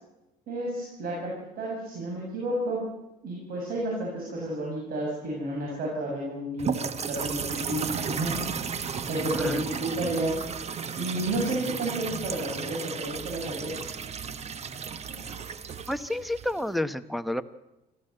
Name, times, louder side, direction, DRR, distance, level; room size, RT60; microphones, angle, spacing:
voice 1, 0.5-2.8 3.2-10.4 11.0-13.8 15.1-15.2, right 1 dB, 60° right, -2 dB, 6.9 m, -31 dB
sound 1, 6.6-16.7, right 6 dB, 40° right, 1.3 m, -34 dB
voice 2, 9.3-9.6 15.9-17.4, left 1 dB, ahead, 13 dB, 1.1 m, -30 dB
26.0 x 15.0 x 8.0 m, 0.95 s
cardioid pair, 110°, 17 cm